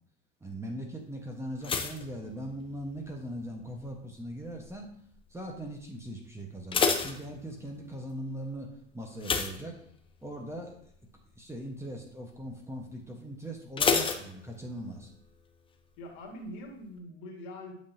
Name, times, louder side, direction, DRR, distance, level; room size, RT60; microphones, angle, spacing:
voice 1, 0.4-4.9 5.3-8.7 8.9-9.7 10.2-10.9 11.4-15.1, right 1 dB, 10° right, 1 dB, 1.1 m, -40 dB
sound 1, 1.6-3.1 3.4-3.9 4.5-4.9 5.1-5.2 5.6-5.7 6.4-7.9 9.2-10.3 10.7-11.0 11.3-11.4 13.8-15.0 15.2-15.3, left 5 dB, 15° left, 0.7 m, -30 dB
voice 2, 16.0-17.7, left 1 dB, 55° left, 1 dB, 1.9 m, -43 dB
8.4 x 5.6 x 2.7 m, 0.66 s
hypercardioid pair, 90°, 35 cm